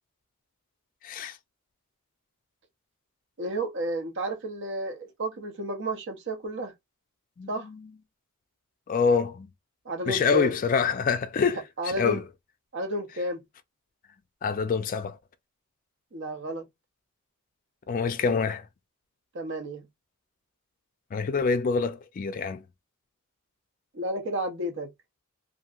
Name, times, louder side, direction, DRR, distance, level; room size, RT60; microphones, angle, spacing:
voice 1, 1.0-1.4 7.4-7.8 8.9-9.5 10.1-12.2 14.4-15.2 17.9-18.7 21.1-22.6, left 5 dB, 40° left, 0.3 m, -26 dB
voice 2, 3.4-6.7 7.5-7.7 9.8-10.5 11.8-12.2 12.7-13.4 16.1-16.7 19.3-19.9 23.9-24.9, right 1 dB, 60° right, 0.7 m, -32 dB
2.8 x 2.6 x 2.4 m
head